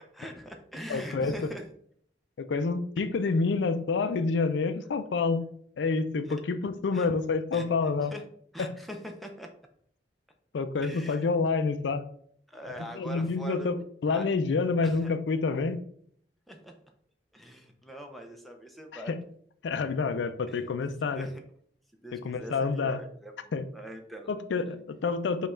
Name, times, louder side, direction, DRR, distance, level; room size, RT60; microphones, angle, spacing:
voice 1, 0.1-1.6 6.9-7.1 7.5-7.7 8.0-8.2 8.5-9.5 10.8-11.3 12.5-13.7 14.1-14.3 14.8-15.1 16.5-16.8 17.3-19.1 20.5-20.7 21.0-21.4 22.0-24.3, equal, ahead, 2 dB, 0.5 m, -42 dB
voice 2, 0.9-1.3 2.4-5.4 5.8-8.1 8.6-8.7 10.5-12.0 13.0-15.8 19.1-19.2 19.6-21.3 22.1-23.0 23.5-23.7 24.3-25.5, left 4 dB, 80° left, 10 dB, 0.4 m, -28 dB
5.2 x 2.4 x 4.3 m, 0.62 s
head